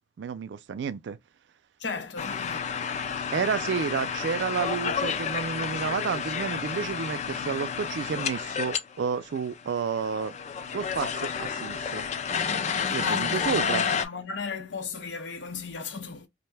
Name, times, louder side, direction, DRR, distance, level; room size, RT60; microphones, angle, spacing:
voice 1, 0.2-1.2 3.3-10.4 10.7-12.1 12.9-13.8, right 6 dB, 75° right, 0.3 m, -30 dB
voice 2, 1.8-2.7 13.0-16.3, left 5 dB, 85° left, 0.7 m, -36 dB
sound 1, 2.2-8.8 9.0-9.1 9.3-14.1, left 6 dB, 40° left, 0.3 m, -30 dB
2.5 x 2.2 x 3.2 m
head